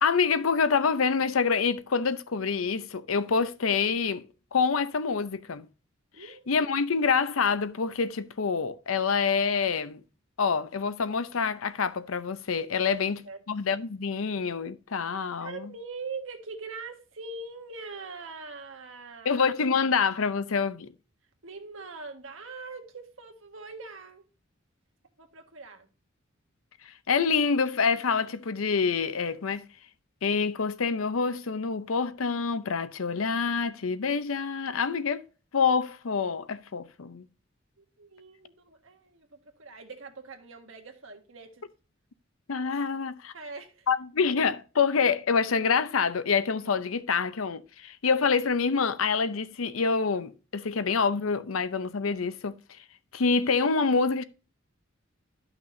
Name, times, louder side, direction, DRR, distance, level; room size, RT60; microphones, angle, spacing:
voice 1, 0.0-4.3 4.5-5.7 6.5-10.0 10.4-13.2 13.5-15.7 19.2-20.9 27.1-29.7 30.2-35.2 35.5-37.3 42.5-43.3 43.9-52.6 53.1-54.2, left 5 dB, 85° left, 0.7 m, -26 dB
voice 2, 6.1-6.5 12.8-13.4 15.4-19.4 21.4-24.3 25.2-25.9 37.8-41.6 43.3-43.9, right 4 dB, 70° right, 1.6 m, -42 dB
12.0 x 6.0 x 2.6 m
head